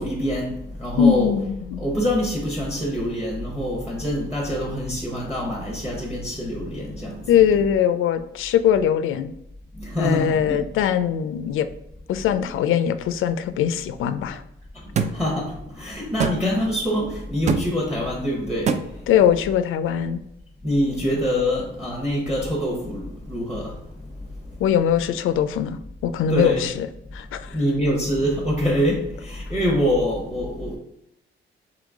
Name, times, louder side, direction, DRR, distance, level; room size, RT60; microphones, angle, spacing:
voice 1, 0.0-1.4 1.8-7.2 9.8-10.6 12.3-12.5 15.0-18.8 20.6-23.7 26.3-26.7 27.5-30.8, equal, 5° right, 0.8 m, -25 dB
voice 2, 1.0-1.5 1.7-1.8 7.3-9.3 10.0-11.7 12.1-14.4 19.1-20.2 24.6-26.9 27.1-27.6, left 9 dB, 80° left, 0.4 m, -21 dB
sound 1, 15.0-15.1 16.2-16.4 17.5-17.6 18.7-18.8, right 6 dB, 35° right, 0.4 m, -21 dB
3.8 x 3.3 x 3.5 m
cardioid pair, 135°, 21 cm